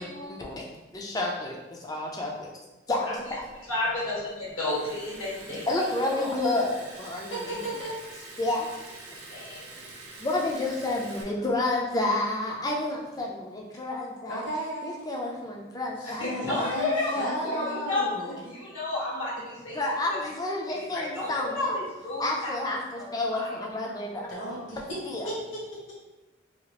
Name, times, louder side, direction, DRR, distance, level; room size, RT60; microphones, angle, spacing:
voice 1, 0.0-0.6 0.9-2.5 2.9-3.4 5.7-7.6 8.4-8.7 10.2-14.5 14.8-16.7 17.1-17.7 19.7-21.8 22.2-24.3 24.7-24.8 25.1-25.3, left 2 dB, 20° left, -1 dB, 0.4 m, -30 dB
Liquid, 3.2-11.2, right 2 dB, 80° right, 0.5 m, -46 dB
voice 2, 3.6-5.7 6.2-6.3 9.3-9.7 16.2-17.1 17.4-18.1 18.5-19.8 20.7-22.5 23.0-23.5 23.9-24.6, left 2 dB, 85° left, -9 dB, 1.3 m, -32 dB
voice 3, 7.3-7.9 14.3-15.0 16.0-18.4 24.0-25.0 25.2-25.8, right 1 dB, 70° left, -5 dB, 1.1 m, -34 dB
2.8 x 2.4 x 2.9 m, 1.1 s
head